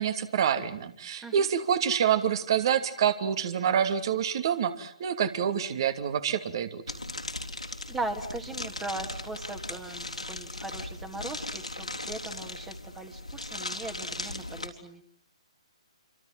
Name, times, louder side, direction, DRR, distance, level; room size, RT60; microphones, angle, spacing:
voice 1, 0.0-6.8, right 8 dB, 45° right, 10 dB, 2.7 m, -27 dB
sound 1, 6.9-14.7, left 2 dB, 85° left, 3.8 m, -38 dB
voice 2, 7.9-15.0, right 2 dB, 10° right, 5 dB, 2.4 m, -39 dB
28.0 x 26.5 x 7.6 m, 0.63 s
figure-of-eight pair, 130°, 3 cm